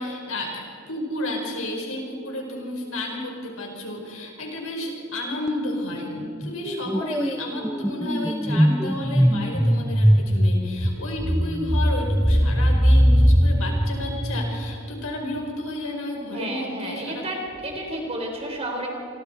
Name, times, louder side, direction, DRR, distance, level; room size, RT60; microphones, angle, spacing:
voice 1, 0.0-17.2, left 1 dB, 70° left, 1 dB, 5.1 m, -32 dB
sound 1, 5.5-5.8 6.1-14.8, equal, 5° right, 0.5 m, -21 dB
voice 2, 16.3-18.9, right 1 dB, 25° right, 1 dB, 4.2 m, -31 dB
28.5 x 24.0 x 4.7 m, 2.4 s
head